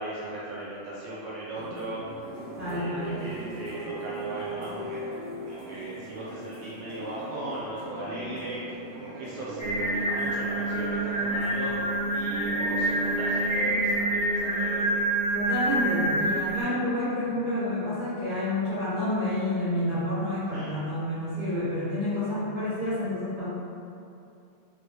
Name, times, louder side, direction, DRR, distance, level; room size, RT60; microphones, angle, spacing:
voice 1, 0.0-2.0 2.7-5.0 5.4-11.8 12.1-14.9 20.5-20.8, right 2 dB, 55° right, -7 dB, 0.5 m, -38 dB
sound 1, 1.5-13.8, right 1 dB, 80° right, 1.0 m, -39 dB
voice 2, 2.6-3.2 15.3-23.5, left 1 dB, 40° right, -12 dB, 1.4 m, -29 dB
Singing, 9.6-16.6, right 1 dB, 25° left, 0.8 m, -27 dB
3.0 x 2.8 x 2.9 m, 2.6 s
omnidirectional pair, 1.3 m